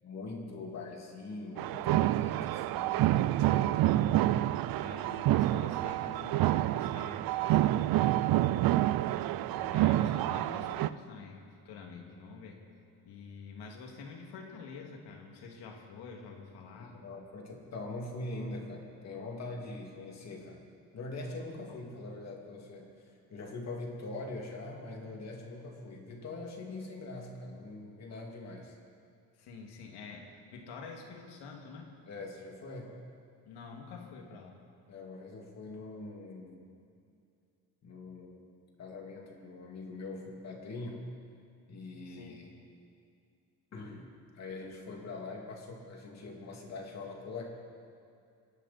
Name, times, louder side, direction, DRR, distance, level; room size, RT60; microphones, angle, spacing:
voice 1, 0.0-3.8 12.0-12.2 16.9-20.6 20.9-28.8 32.1-33.0 34.9-36.7 37.8-38.5 38.8-41.0 41.7-42.6 43.7-44.1 44.3-47.5, left 2 dB, 40° left, 0 dB, 2.5 m, -43 dB
sound 1, 1.6-10.9, right 14 dB, 65° right, 0.5 m, -28 dB
voice 2, 4.8-8.7 9.4-12.6 13.1-17.0 21.7-21.8 29.4-31.9 33.4-34.7 42.1-42.4, left 5 dB, 85° left, 1 dB, 2.4 m, -48 dB
26.5 x 11.0 x 4.2 m, 2.4 s
cardioid pair, 170°, 39 cm